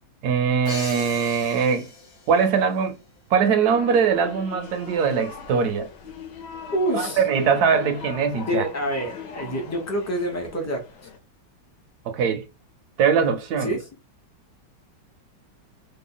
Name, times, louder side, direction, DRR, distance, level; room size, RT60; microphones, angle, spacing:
voice 1, 0.2-1.9 2.3-3.0 3.3-5.9 6.9-8.6 12.1-12.5 13.0-13.7, right 6 dB, 70° right, 1.0 m, -21 dB
Crash cymbal, 0.6-2.5, left 3 dB, 50° left, 1.0 m, -38 dB
sound 1, 3.7-11.2, left 7 dB, 70° left, 1.3 m, -40 dB
voice 2, 6.7-7.2 8.5-10.8 13.6-13.9, equal, 20° left, 0.4 m, -27 dB
3.3 x 2.2 x 3.7 m
omnidirectional pair, 2.0 m